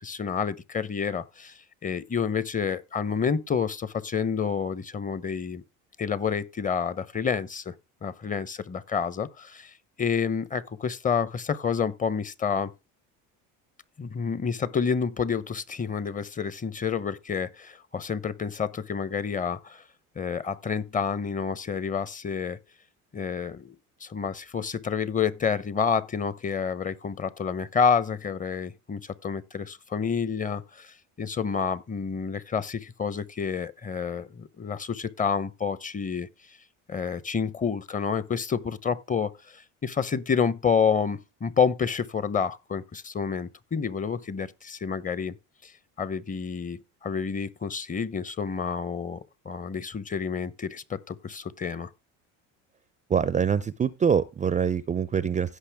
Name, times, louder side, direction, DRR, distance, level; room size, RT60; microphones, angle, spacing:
voice 1, 0.0-5.6 6.0-7.7 8.0-12.7 14.0-19.8 20.2-22.6 23.1-23.7 24.0-36.3 36.9-45.3 45.6-45.7 46.0-51.9, left 6 dB, 25° left, 0.8 m, -29 dB
voice 2, 53.1-55.6, right 7 dB, 20° right, 0.5 m, -24 dB
16.0 x 5.6 x 3.5 m
cardioid pair, 115°, 34 cm